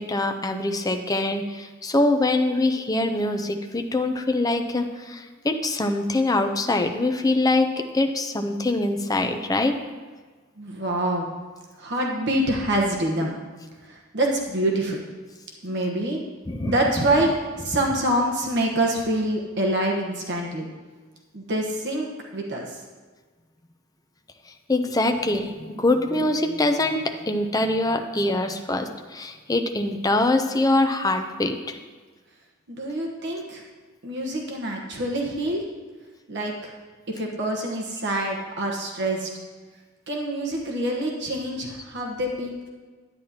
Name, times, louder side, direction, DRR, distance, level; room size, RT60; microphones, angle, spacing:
voice 1, 0.0-9.8 16.5-16.7 24.7-31.8, left 2 dB, 20° left, 6 dB, 0.6 m, -24 dB
voice 2, 10.6-11.3 11.8-13.3 13.8-15.0 15.6-16.2 16.6-17.3 17.6-20.7 21.3-22.1 22.3-22.8 32.7-33.6 34.0-35.6 36.3-36.7 37.1-39.3 40.1-42.7, right 1 dB, 60° right, 0 dB, 1.1 m, -26 dB
10.5 x 9.0 x 2.8 m, 1.4 s
head